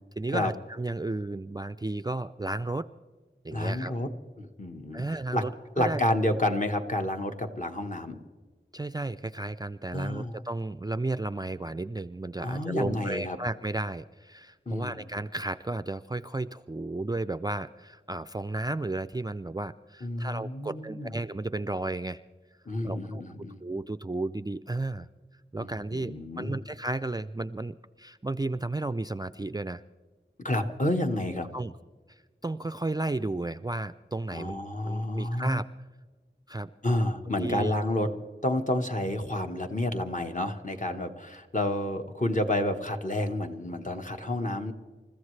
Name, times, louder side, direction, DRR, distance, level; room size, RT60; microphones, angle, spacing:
voice 1, 0.2-2.9 3.4-3.9 4.9-6.0 8.7-22.2 22.8-23.2 23.6-25.1 25.5-29.8 31.5-31.7 32.1-34.6 34.8-35.7 36.5-36.7 37.4-38.1, right 2 dB, 20° right, 12 dB, 0.4 m, -33 dB
voice 2, 3.5-4.1 4.4-5.0 5.3-5.4 5.8-8.2 9.9-10.4 12.4-13.4 14.7-15.0 20.0-21.1 22.7-23.6 25.6-26.6 30.4-31.5 34.3-35.6 36.8-38.1 38.4-44.7, left 1 dB, 40° left, 4 dB, 1.3 m, -30 dB
29.0 x 14.5 x 3.2 m, 1.4 s
wide cardioid pair, 50°, 20 cm